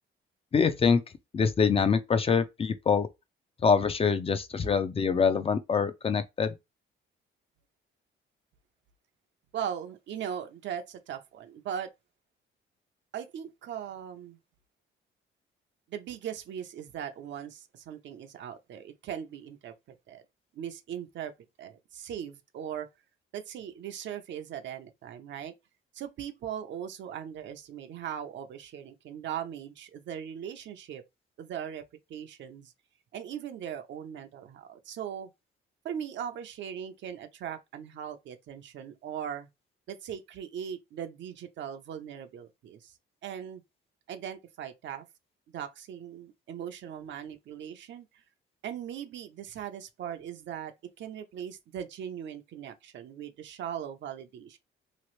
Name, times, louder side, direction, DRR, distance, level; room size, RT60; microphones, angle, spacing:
voice 1, 0.5-1.0 1.3-3.1 3.6-6.5, left 6 dB, 30° left, 0.4 m, -25 dB
voice 2, 9.5-11.9 13.1-14.4 15.9-19.7 20.1-20.2 20.5-21.3 21.6-22.9 23.3-25.5 25.9-31.0 31.4-32.7 33.1-35.3 35.8-39.5 39.9-42.9 43.2-43.6 44.1-45.0 45.5-48.2 48.6-54.6, right 9 dB, 70° right, 0.6 m, -39 dB
3.0 x 2.4 x 3.0 m
cardioid pair, 90°, 20 cm